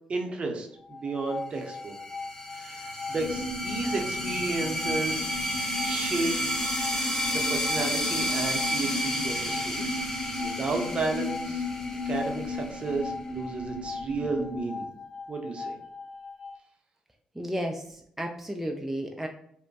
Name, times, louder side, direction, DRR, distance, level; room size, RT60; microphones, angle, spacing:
voice 1, 0.1-1.9 2.5-5.3 5.8-6.4 7.5-9.9 10.3-11.6 12.0-14.8 15.3-15.8, right 3 dB, 45° right, 2 dB, 0.7 m, -32 dB
sound 1, 0.7-16.5, left 4 dB, 60° left, 1.1 m, -41 dB
sound 2, 1.8-13.0, equal, 20° left, 0.8 m, -32 dB
sound 3, 3.1-14.6, left 2 dB, 75° left, 1.3 m, -36 dB
voice 2, 17.4-19.3, equal, 5° right, 2 dB, 0.4 m, -33 dB
3.0 x 2.1 x 2.7 m, 0.68 s
supercardioid pair, 60°, 3 cm